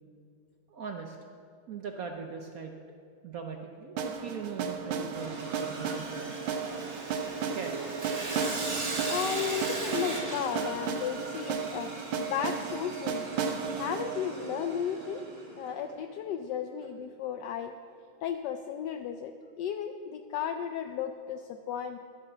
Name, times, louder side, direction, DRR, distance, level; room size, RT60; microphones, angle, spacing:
voice 1, 0.7-1.2 1.7-3.0 3.2-6.6 7.5-7.9, right 5 dB, 65° right, 4 dB, 0.8 m, -40 dB
sound 1, 4.0-15.9, right 6 dB, 85° right, 1.8 m, -35 dB
Sawing, 5.2-15.4, right 2 dB, 35° right, 1.7 m, -39 dB
voice 2, 9.1-13.3 13.7-15.3 15.6-17.7 18.2-22.0, left 8 dB, 75° left, 7 dB, 1.0 m, -34 dB
12.0 x 7.5 x 6.8 m, 2.4 s
omnidirectional pair, 2.3 m